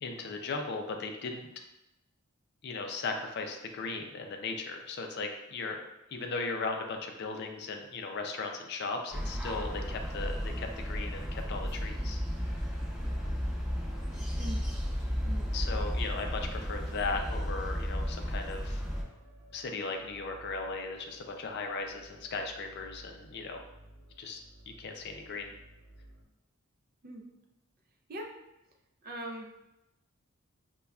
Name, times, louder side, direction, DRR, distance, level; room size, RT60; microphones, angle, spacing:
voice 1, 0.0-1.5 2.6-5.8 6.1-12.2 15.5-18.8 19.5-23.6 24.2-24.4 24.8-25.5, left 3 dB, 50° left, 4 dB, 0.4 m, -37 dB
sound 1, 9.1-19.0, equal, 15° right, 1.0 m, -34 dB
sound 2, 10.6-26.2, right 1 dB, 70° right, 0.9 m, -56 dB
voice 2, 29.0-29.5, right 1 dB, 45° right, 2 dB, 0.5 m, -41 dB
5.3 x 2.2 x 2.3 m, 0.91 s
head